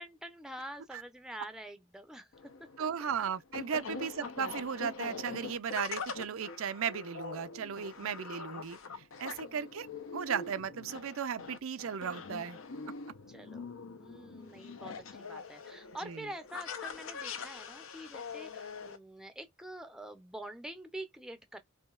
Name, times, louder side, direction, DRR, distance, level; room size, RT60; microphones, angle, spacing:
voice 1, 0.0-2.9 9.4-10.3 13.3-21.6, right 1 dB, 5° right, 0.5 m, -47 dB
sound 1, 2.3-19.0, left 4 dB, 70° left, 0.7 m, -43 dB
voice 2, 2.8-8.8 9.2-9.9 10.1-12.6 16.0-16.2, right 7 dB, 75° right, 0.5 m, -36 dB
4.9 x 2.7 x 2.3 m
head